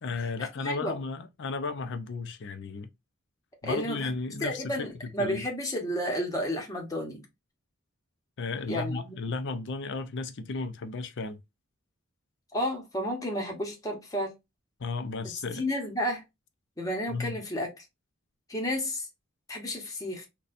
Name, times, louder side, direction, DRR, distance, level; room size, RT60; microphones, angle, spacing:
voice 1, 0.0-2.9 3.6-5.5 8.4-11.4 14.8-15.6 17.1-17.4, left 4 dB, 55° left, 0.5 m, -34 dB
voice 2, 0.6-1.0 3.6-4.1 4.4-7.2 8.7-9.2 12.5-14.3 15.5-16.2 16.8-17.8 18.5-19.1 19.5-20.3, equal, 15° left, 0.9 m, -31 dB
4.0 x 2.3 x 2.5 m
head